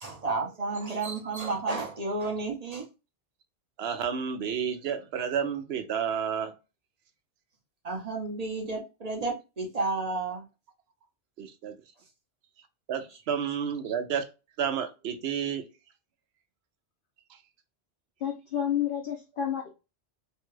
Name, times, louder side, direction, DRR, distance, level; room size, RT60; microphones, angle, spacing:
voice 1, 0.0-2.8 7.8-10.4, right 3 dB, 40° right, 0.7 m, -31 dB
voice 2, 3.8-6.5 11.4-11.7 12.9-14.2 14.6-15.7, right 7 dB, 70° right, 0.8 m, -30 dB
voice 3, 18.2-19.7, left 9 dB, 55° left, 0.7 m, -30 dB
3.2 x 2.3 x 3.0 m
omnidirectional pair, 1.2 m